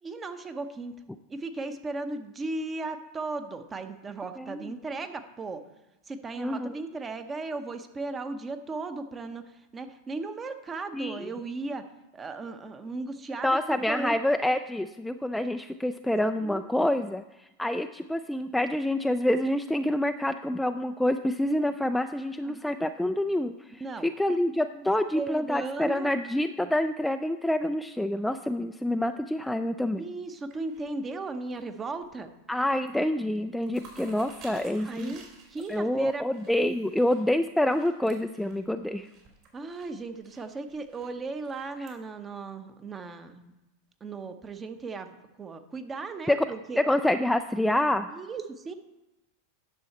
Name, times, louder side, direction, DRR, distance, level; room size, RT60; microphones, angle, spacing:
voice 1, 0.0-0.9 1.3-5.6 6.0-11.8 12.1-14.2 16.4-16.6 21.7-21.8 22.4-22.7 23.8-24.1 24.7-24.9 25.1-26.1 30.0-32.3 34.8-36.3 39.5-43.5 44.0-46.8 48.1-48.7, right 3 dB, 20° right, 8 dB, 0.8 m, -36 dB
voice 2, 4.4-4.7 6.4-6.7 10.9-11.3 13.4-30.0 32.5-35.1 35.7-39.1 41.8-41.9 46.3-46.5 46.8-48.1, left 1 dB, 5° left, 7 dB, 0.3 m, -27 dB
sound 1, 30.4-31.6 31.9-32.3 32.6-33.0 33.3-41.9, right 4 dB, 55° right, 3.0 m, -53 dB
10.5 x 6.3 x 4.2 m, 0.98 s
hypercardioid pair, 95°, 0 cm